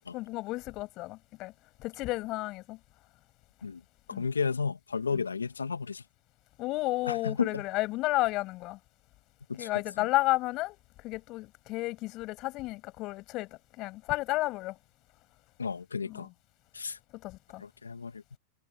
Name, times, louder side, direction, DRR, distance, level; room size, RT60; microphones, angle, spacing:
voice 1, 0.1-1.5 1.8-2.8 4.1-4.2 6.6-8.8 9.6-14.8 16.0-16.3 17.1-17.6, left 19 dB, 45° left, 7.2 m, -32 dB
voice 2, 4.1-6.0 7.1-7.6 9.5-9.7 10.0-10.1 15.6-16.3 16.7-17.0 17.6-18.4, left 5 dB, 90° left, 1.9 m, -33 dB
hypercardioid pair, 100°, 0 cm